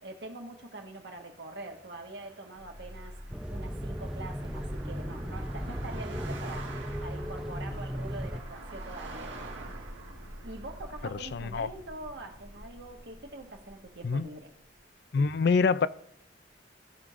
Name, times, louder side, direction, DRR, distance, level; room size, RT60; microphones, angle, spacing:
voice 1, 0.0-9.4 10.4-14.5, right 2 dB, 60° right, 1.5 m, -44 dB
Car passing by, 1.6-13.2, right 3 dB, 80° right, 1.7 m, -48 dB
sound 1, 2.5-14.8, equal, 40° right, 3.8 m, -47 dB
sound 2, 3.3-8.4, equal, 5° right, 0.4 m, -36 dB
voice 2, 11.2-11.7 14.0-14.3 15.1-15.9, left 4 dB, 60° left, 0.4 m, -25 dB
16.0 x 6.3 x 2.5 m
head